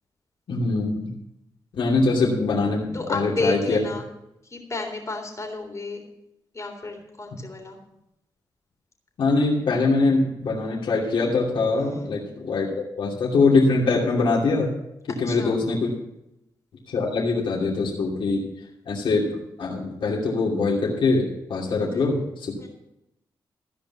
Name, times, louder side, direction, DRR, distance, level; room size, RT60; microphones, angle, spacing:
voice 1, 0.5-1.1 1.7-3.8 9.2-14.7 15.2-15.9 16.9-18.4 18.9-22.6, left 3 dB, 75° left, -4 dB, 2.8 m, -23 dB
voice 2, 2.9-4.1 4.5-6.0 6.5-7.8 11.8-12.1 15.3-15.6 21.7-22.1 22.6-22.7, left 2 dB, 35° left, 3 dB, 3.5 m, -32 dB
15.0 x 5.2 x 8.5 m, 0.85 s
cardioid pair, 75°, 8 cm